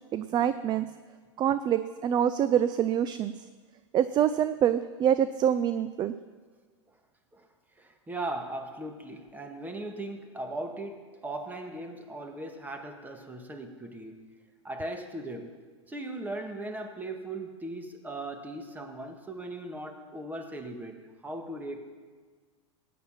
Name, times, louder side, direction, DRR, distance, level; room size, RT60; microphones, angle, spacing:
voice 1, 0.1-0.9 1.4-3.3 3.9-6.1, right 9 dB, 25° right, 13 dB, 0.5 m, -25 dB
voice 2, 7.8-14.2 14.6-15.5 15.9-21.9, right 2 dB, 10° right, 5 dB, 1.8 m, -38 dB
16.5 x 9.4 x 5.7 m, 1.5 s
hypercardioid pair, 105°, 16 cm